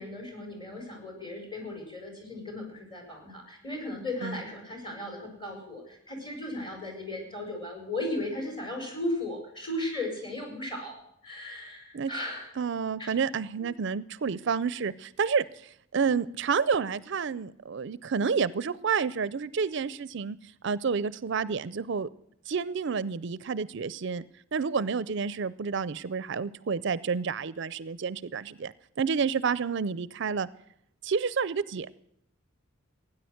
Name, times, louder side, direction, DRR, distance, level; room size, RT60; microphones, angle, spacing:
voice 1, 0.0-12.5 13.0-13.1 13.6-13.7, left 1 dB, 25° left, 3 dB, 5.1 m, -36 dB
voice 2, 12.6-20.4 20.6-22.1 22.5-24.2 24.5-28.7 29.0-30.5 31.0-31.9, right 5 dB, 60° right, 19 dB, 0.5 m, -29 dB
17.0 x 9.9 x 7.8 m, 0.74 s
head